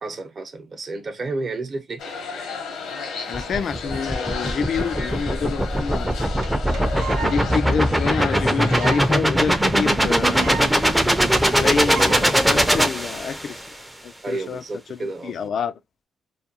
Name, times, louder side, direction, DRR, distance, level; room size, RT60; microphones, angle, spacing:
voice 1, 0.0-2.0 14.2-15.5, right 3 dB, 40° right, 0.7 m, -31 dB
sound 1, 2.0-9.2, left 4 dB, 80° left, 0.8 m, -33 dB
voice 2, 3.3-6.1 7.2-10.6 11.5-13.6 14.0-14.6 14.9-15.7, left 6 dB, 55° left, 0.3 m, -28 dB
sound 2, 3.3-13.7, equal, 5° right, 0.5 m, -21 dB
sound 3, 6.1-6.2 6.4-6.5 6.7-7.4 7.7-7.8 8.0-8.1 8.6-9.1 9.4-9.5 9.7-9.8 10.0-10.7 11.0-11.1 11.3-11.6 11.9-12.3 12.9-13.2, right 7 dB, 75° right, 0.5 m, -33 dB
2.4 x 2.2 x 2.8 m
cardioid pair, 90°, 0 cm